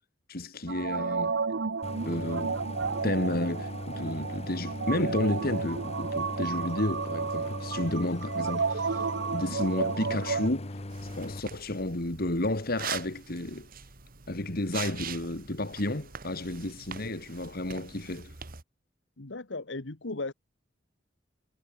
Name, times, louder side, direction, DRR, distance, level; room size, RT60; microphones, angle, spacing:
voice 1, 0.3-1.3 2.1-2.6 3.0-13.7 14.3-18.4, left 1 dB, 55° left, 2.5 m, -32 dB
sound 1, 0.7-10.5, right 5 dB, 70° right, 0.7 m, -32 dB
Idling, 1.8-11.4, left 1 dB, 35° left, 1.6 m, -39 dB
sound 2, 10.9-18.6, right 7 dB, 50° right, 1.9 m, -43 dB
voice 2, 19.2-20.3, left 2 dB, 75° left, 1.5 m, -36 dB
head